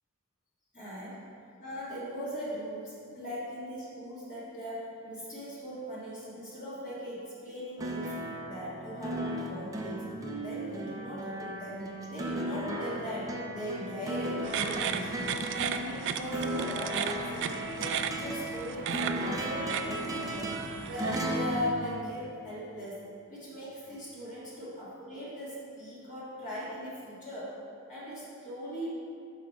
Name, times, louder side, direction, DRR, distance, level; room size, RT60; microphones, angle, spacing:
voice 1, 0.7-1.3 1.6-8.2 8.4-10.1 10.4-20.6 20.9-23.0 23.3-27.5 27.9-28.9, equal, 35° left, -9 dB, 1.8 m, -39 dB
sound 1, 7.8-22.7 23.9-24.0, right 1 dB, 15° right, 0.6 m, -36 dB
sound 2, 14.4-21.4, right 8 dB, 55° right, 0.3 m, -36 dB
6.5 x 5.8 x 4.7 m, 2.3 s
head